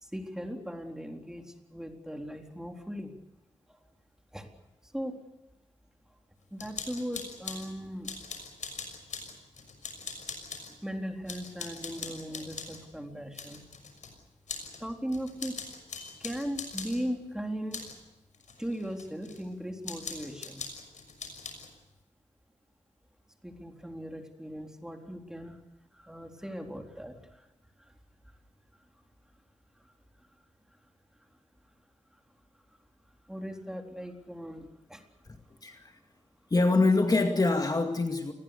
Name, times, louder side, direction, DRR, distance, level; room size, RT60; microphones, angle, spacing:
voice 1, 0.0-3.1 3.7-3.8 4.3-4.5 4.8-5.2 6.5-8.1 10.8-13.6 14.8-15.6 16.2-17.9 18.6-20.7 23.4-25.6 25.9-27.5 27.8-27.9 29.8-29.9 30.2-30.3 33.3-35.1, equal, 5° right, 3 dB, 3.9 m, -38 dB
sound 1, 6.6-7.7 8.0-10.7 11.3-12.8 13.3-14.1 14.5-14.8 15.1-17.0 17.7-18.0 18.3-19.4 19.8-21.7, left 4 dB, 80° left, 6.2 m, -41 dB
voice 2, 35.3-35.9 36.5-38.3, left 3 dB, 30° left, 5 dB, 2.2 m, -25 dB
28.5 x 21.0 x 6.8 m, 0.97 s
wide cardioid pair, 100°, 12 cm